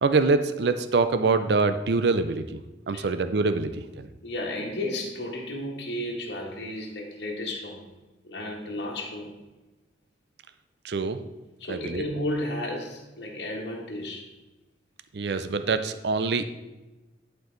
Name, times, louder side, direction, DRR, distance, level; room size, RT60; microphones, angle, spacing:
voice 1, 0.0-2.6 2.9-3.7 4.0-4.1 10.8-11.2 11.7-12.0 15.1-16.4, right 4 dB, 65° right, 11 dB, 0.5 m, -24 dB
voice 2, 4.2-7.8 8.2-9.3 11.6-14.2, left 1 dB, 70° left, -2 dB, 1.5 m, -33 dB
11.0 x 4.6 x 3.9 m, 1.1 s
head